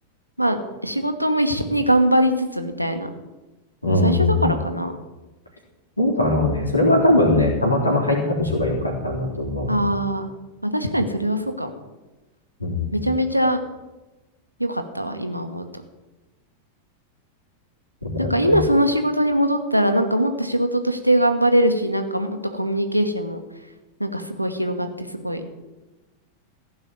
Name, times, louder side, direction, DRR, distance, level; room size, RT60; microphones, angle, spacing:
voice 1, 0.4-3.1 3.9-4.9 9.7-10.3 10.6-11.7 12.9-13.6 14.6-15.6 18.2-23.4 24.0-25.4, right 1 dB, 90° right, 6 dB, 1.3 m, -22 dB
voice 2, 3.8-4.5 6.0-9.8 12.6-13.1 18.0-18.6, left 2 dB, 85° left, -1 dB, 3.6 m, -21 dB
15.5 x 5.6 x 9.3 m, 1.1 s
figure-of-eight pair, 90°, 0 cm